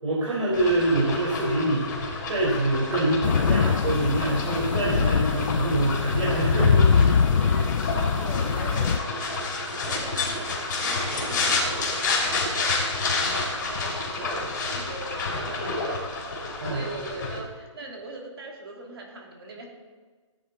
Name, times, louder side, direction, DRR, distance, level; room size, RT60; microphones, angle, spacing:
voice 1, 0.0-1.9 2.3-7.1 16.6-16.9, right 1 dB, 80° right, -7 dB, 4.9 m, -25 dB
sound 1, 0.5-17.4, left 3 dB, 35° left, 3.2 m, -30 dB
sound 2, 3.2-9.0, left 6 dB, 85° left, 0.6 m, -23 dB
sound 3, 4.7-5.4 5.7-9.3 9.8-9.9 10.3-11.7, equal, 5° right, 3.9 m, -43 dB
voice 2, 7.1-12.0 12.5-19.6, right 2 dB, 50° right, 0 dB, 3.1 m, -41 dB
16.5 x 10.0 x 4.2 m, 1.4 s
hypercardioid pair, 175°, 16 cm